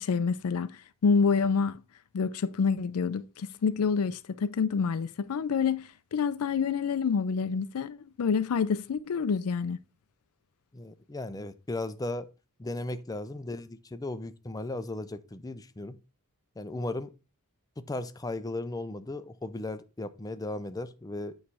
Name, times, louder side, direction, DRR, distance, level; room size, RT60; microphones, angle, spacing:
voice 1, 0.0-1.8 2.1-9.8, left 5 dB, 75° left, 0.4 m, -27 dB
voice 2, 10.7-12.3 12.6-16.0 16.6-17.1 17.8-21.4, left 2 dB, 15° left, 0.5 m, -36 dB
8.5 x 3.2 x 4.7 m
head